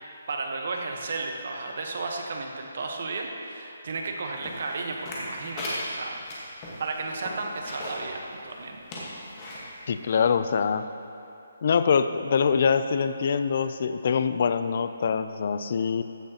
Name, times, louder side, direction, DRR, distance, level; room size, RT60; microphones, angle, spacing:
voice 1, 0.3-6.2 6.8-8.8, right 3 dB, 40° right, 2 dB, 1.0 m, -33 dB
sound 1, 4.4-8.1 8.5-8.6 8.9-9.6 10.2-10.3, left 1 dB, 15° left, 1.3 m, -37 dB
voice 2, 9.9-10.8 11.6-16.0, left 6 dB, 30° left, 11 dB, 0.3 m, -24 dB
14.5 x 10.5 x 2.8 m, 2.7 s
hypercardioid pair, 180°, 0 cm